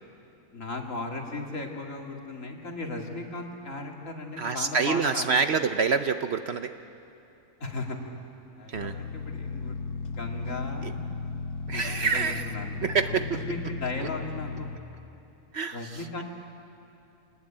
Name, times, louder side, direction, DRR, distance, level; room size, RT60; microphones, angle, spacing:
voice 1, 0.5-5.3 7.6-8.1 8.6-9.8 10.0-11.0 11.7-12.8 13.1-14.7 15.7-16.2, left 3 dB, 60° left, 1 dB, 2.7 m, -36 dB
voice 2, 4.4-6.7 8.7-9.0 10.8-10.9 11.7-12.5 12.8-13.4 14.0-14.1 15.5-16.2, right 5 dB, 55° right, 9 dB, 0.8 m, -27 dB
sound 1, 8.7-14.8, left 4 dB, 90° left, 1.3 m, -36 dB
26.0 x 19.5 x 8.9 m, 2.7 s
omnidirectional pair, 1.5 m